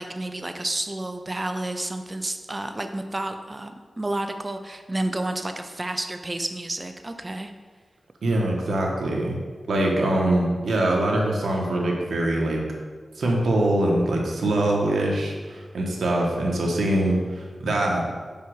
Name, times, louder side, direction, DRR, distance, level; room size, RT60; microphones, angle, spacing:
voice 1, 0.0-7.5, right 1 dB, 25° right, 6 dB, 0.6 m, -30 dB
voice 2, 8.2-9.3 9.7-12.6 13.2-18.0, right 1 dB, 90° right, -1 dB, 1.4 m, -23 dB
5.5 x 5.1 x 6.5 m, 1.5 s
wide cardioid pair, 80°, 0 cm